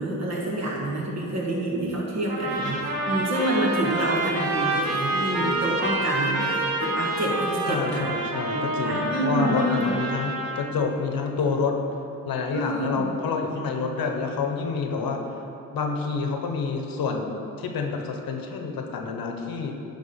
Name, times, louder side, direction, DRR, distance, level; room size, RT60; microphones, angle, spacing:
voice 1, 0.0-8.1 8.5-9.9 12.5-13.1, right 1 dB, 50° right, -4 dB, 1.9 m, -27 dB
sound 1, 2.3-10.7, right 2 dB, 85° right, 1.2 m, -28 dB
voice 2, 7.7-11.7 12.3-15.2 15.7-19.7, left 4 dB, 80° left, 3 dB, 0.9 m, -28 dB
10.0 x 3.7 x 5.6 m, 2.9 s
cardioid pair, 85°, 35 cm